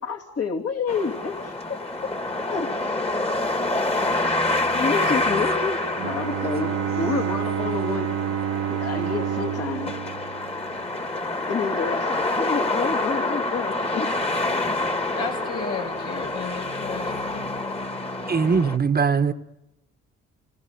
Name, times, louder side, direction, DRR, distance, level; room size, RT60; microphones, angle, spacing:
voice 1, 0.0-1.8 2.5-3.0 4.7-8.3 8.7-9.9 11.5-14.1, left 5 dB, 55° left, 2.9 m, -29 dB
sound 1, 0.9-18.8, left 2 dB, 20° left, 1.9 m, -27 dB
Bowed string instrument, 5.9-11.2, right 10 dB, 55° right, 1.1 m, -29 dB
voice 2, 15.2-17.4, left 4 dB, 80° left, 6.7 m, -33 dB
voice 3, 18.3-19.3, right 5 dB, 30° right, 1.2 m, -21 dB
30.0 x 20.0 x 8.2 m
cardioid pair, 90°, 30 cm